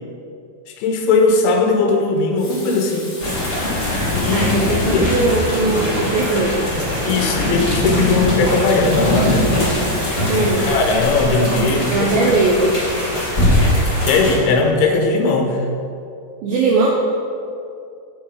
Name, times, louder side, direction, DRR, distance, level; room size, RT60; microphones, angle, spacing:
voice 1, 0.8-3.2 4.1-4.5 4.9-5.1 7.1-9.5 10.4-12.3 14.0-15.6, left 3 dB, 80° left, 2 dB, 3.5 m, -18 dB
Water tap faucet, 2.2-5.1 5.9-6.0 6.2-6.3 8.6-11.2 11.8-12.0, left 2 dB, 45° left, 2.6 m, -36 dB
sound 1, 3.2-14.4, left 1 dB, 15° left, 2.7 m, -21 dB
voice 2, 4.3-6.7 10.3-10.7 11.9-12.8 16.4-16.9, right 3 dB, 80° right, -1 dB, 2.1 m, -19 dB
15.5 x 7.3 x 4.8 m, 2.5 s
omnidirectional pair, 5.5 m